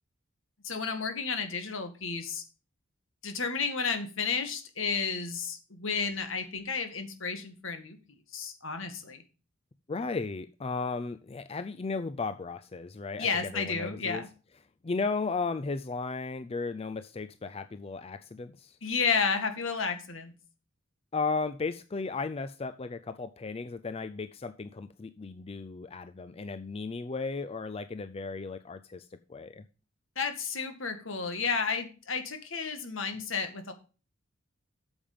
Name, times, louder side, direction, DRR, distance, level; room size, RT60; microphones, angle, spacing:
voice 1, 0.6-2.4 3.2-8.0 8.3-9.2 13.2-14.3 18.8-20.3 30.2-33.7, left 5 dB, 70° left, 2.0 m, -32 dB
voice 2, 9.9-14.2 14.8-18.8 21.1-29.6, left 4 dB, 30° left, 0.4 m, -35 dB
8.8 x 7.2 x 5.0 m
head